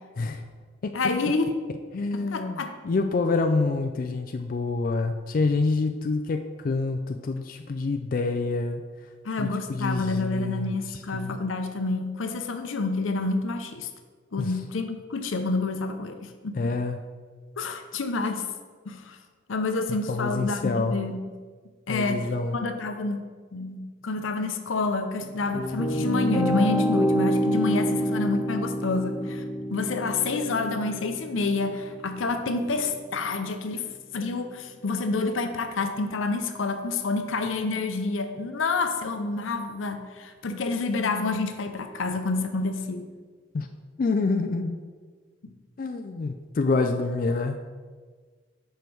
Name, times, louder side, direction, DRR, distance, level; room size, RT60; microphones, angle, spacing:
voice 1, 0.9-1.6 2.1-2.7 9.2-13.9 14.3-16.7 17.6-18.5 18.8-19.2 19.5-21.2 21.9-22.3 22.5-23.2 23.5-29.4 29.7-33.8 34.1-43.0, left 3 dB, 85° left, 7 dB, 0.6 m, -28 dB
voice 2, 1.9-8.8 9.4-10.7 11.1-11.4 14.4-14.5 16.6-17.0 20.1-21.0 21.9-22.6 43.5-43.7 44.0-44.8 45.8-47.6, left 3 dB, 45° left, 6 dB, 0.3 m, -27 dB
sound 1, 25.2-34.3, equal, 5° right, 1.2 m, -28 dB
5.2 x 4.5 x 6.1 m, 1.5 s
head